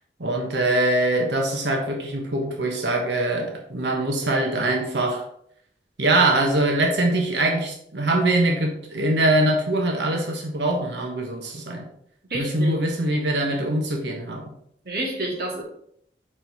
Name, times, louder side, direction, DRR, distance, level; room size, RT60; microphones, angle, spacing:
voice 1, 0.2-5.2 6.0-11.9 12.3-14.4, right 1 dB, 80° right, 1 dB, 1.2 m, -23 dB
voice 2, 12.3-12.8 14.8-15.6, right 1 dB, 55° right, -2 dB, 2.1 m, -28 dB
6.2 x 4.4 x 4.7 m, 0.67 s
head